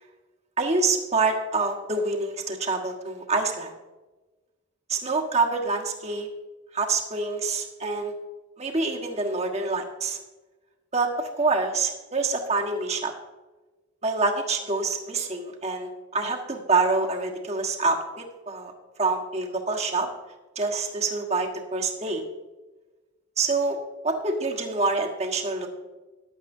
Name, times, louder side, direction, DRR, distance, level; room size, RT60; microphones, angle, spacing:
voice 1, 0.6-3.7 4.9-6.3 6.7-8.1 8.6-10.2 10.9-13.1 14.0-18.7 19.0-20.1 20.5-22.2 23.4-23.8 24.0-25.7, right 3 dB, 30° right, 1 dB, 1.4 m, -26 dB
14.5 x 11.0 x 2.7 m, 1.2 s
head